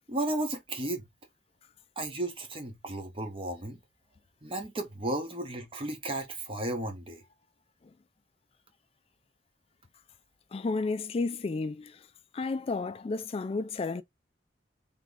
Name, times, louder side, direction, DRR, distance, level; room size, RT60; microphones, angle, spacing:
voice 1, 0.1-1.1 2.0-3.8 4.4-7.2, right 1 dB, 30° right, 0.9 m, -34 dB
voice 2, 10.5-12.0 12.3-14.0, left 3 dB, 30° left, 0.3 m, -32 dB
3.5 x 2.9 x 3.9 m
head